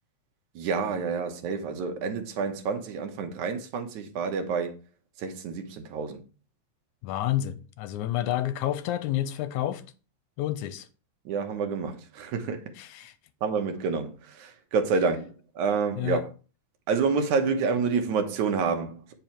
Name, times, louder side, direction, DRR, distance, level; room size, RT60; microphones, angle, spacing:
voice 1, 0.6-4.8 5.2-6.2 11.3-12.6 13.4-16.3 16.9-19.1, right 5 dB, 75° right, 2.5 m, -28 dB
voice 2, 7.0-9.8 10.4-10.9 12.8-13.1 16.0-16.2, left 13 dB, 85° left, 2.1 m, -29 dB
8.9 x 5.4 x 4.5 m
omnidirectional pair, 3.5 m